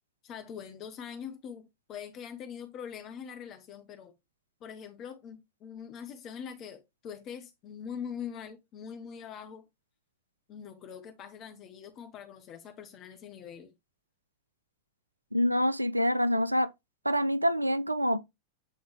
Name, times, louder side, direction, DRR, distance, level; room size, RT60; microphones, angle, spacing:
voice 1, 0.2-4.1 4.6-9.6 10.5-13.7, left 7 dB, 35° left, 0.9 m, -43 dB
voice 2, 15.3-16.7 17.0-18.2, equal, 85° right, 0.5 m, -26 dB
8.6 x 3.9 x 3.3 m
figure-of-eight pair, 90°, 0 cm